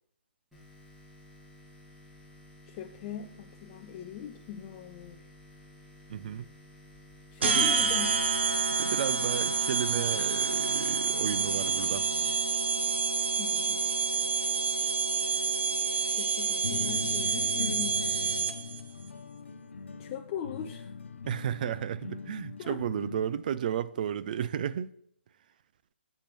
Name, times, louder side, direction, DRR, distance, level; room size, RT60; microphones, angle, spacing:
sound 1, 0.5-13.4, left 1 dB, 5° right, 2.5 m, -55 dB
voice 1, 2.7-5.2 7.3-8.1 13.4-13.9 16.2-18.3 20.0-20.9 22.6-22.8, left 8 dB, 25° left, 0.5 m, -40 dB
voice 2, 6.1-6.5 7.4-7.7 8.8-12.1 21.3-24.9, right 9 dB, 45° right, 0.4 m, -33 dB
sound 2, 7.4-18.8, right 5 dB, 65° right, 0.8 m, -28 dB
sound 3, 16.6-23.3, left 5 dB, 80° left, 0.7 m, -41 dB
7.3 x 6.5 x 3.1 m
hypercardioid pair, 145°, 6 cm